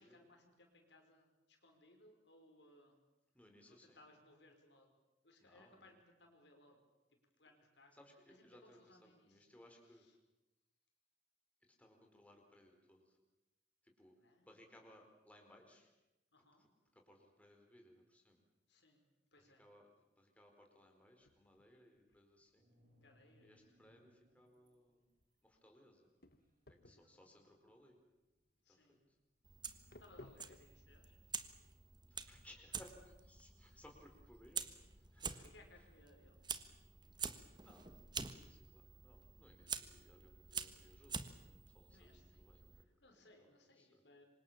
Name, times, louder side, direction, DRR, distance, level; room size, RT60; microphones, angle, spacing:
voice 1, 0.0-3.0 3.7-4.9 5.2-6.9 7.4-8.0 8.3-9.5 9.8-10.2 14.2-14.5 16.3-16.7 18.7-19.0 19.3-19.6 23.0-23.8 26.9-27.1 28.6-29.0 30.0-31.2 33.7-33.8 35.3-36.6 41.9-42.5 42.8-44.2, left 2 dB, 80° left, 3 dB, 5.6 m, -66 dB
voice 2, 3.3-4.0 5.4-6.0 7.9-10.1 11.7-13.2 13.8-14.1 14.4-15.9 16.6-16.7 16.9-18.4 19.4-19.9 20.2-22.7 23.4-25.0 25.4-26.1 26.8-28.0 28.7-29.0 32.1-34.7 35.0-35.5 37.5-37.9 38.2-42.7 43.4-44.0, left 1 dB, 10° left, 2 dB, 4.5 m, -64 dB
sound 1, 21.2-32.6, left 2 dB, 60° left, 1.6 m, -64 dB
sound 2, 22.6-24.8 25.0-28.5, equal, 50° right, 7.4 m, -73 dB
Fire, 29.4-42.8, right 6 dB, 25° right, 1.5 m, -48 dB
27.5 x 25.0 x 7.3 m, 0.99 s
head